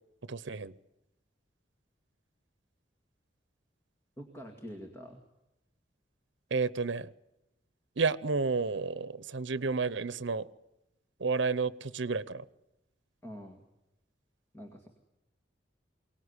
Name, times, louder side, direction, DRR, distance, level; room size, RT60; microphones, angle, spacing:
voice 1, 0.3-0.7 6.5-7.1 8.0-10.4 11.2-12.4, right 4 dB, 85° right, 0.8 m, -31 dB
voice 2, 4.2-5.2 13.2-13.6 14.5-14.9, equal, 15° left, 2.1 m, -45 dB
23.0 x 19.0 x 9.8 m
head